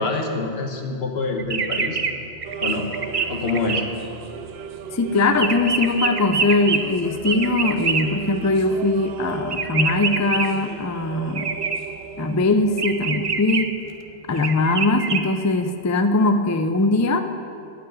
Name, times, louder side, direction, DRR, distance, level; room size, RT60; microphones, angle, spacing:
voice 1, 0.0-2.0 2.6-2.9 3.3-3.8, left 3 dB, 75° left, 3 dB, 1.5 m, -25 dB
sound 1, 1.4-2.1 2.4-3.8 4.2-8.1 9.5-10.5 11.3-11.8 12.8-13.6 14.4-15.2, right 5 dB, 40° right, 0.6 m, -25 dB
sound 2, 2.4-13.3, right 7 dB, 75° right, 0.8 m, -36 dB
voice 2, 4.9-11.5 12.2-13.7 14.3-17.2, left 2 dB, 25° left, 8 dB, 0.4 m, -21 dB
12.5 x 6.1 x 8.7 m, 2.5 s
omnidirectional pair, 1.0 m